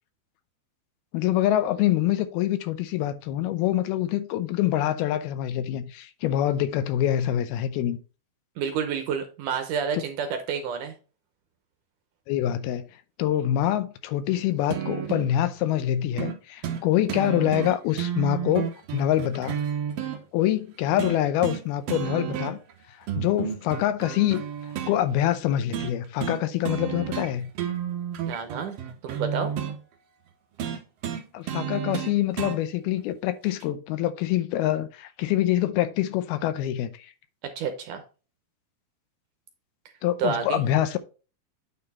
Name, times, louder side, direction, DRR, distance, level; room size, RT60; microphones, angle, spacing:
voice 1, 1.1-8.0 9.9-10.0 12.3-12.9 13.2-19.6 20.3-22.6 23.0-24.4 24.9-27.5 31.3-37.1 40.0-41.0, left 12 dB, 85° left, 2.7 m, -25 dB
voice 2, 8.6-11.0 28.3-28.8 29.0-29.5 37.4-38.0 40.2-40.6, right 6 dB, 70° right, 2.1 m, -29 dB
sound 1, 14.7-15.3 16.2-16.4 16.6-16.8 17.1-20.2 21.0-21.6 21.9-22.7 23.1-24.9 25.7-25.9 26.2-26.4 26.6-27.3 27.5-29.8 30.6-32.6 33.6-33.7, right 9 dB, 90° right, 1.4 m, -31 dB
9.1 x 4.4 x 4.1 m
omnidirectional pair, 4.4 m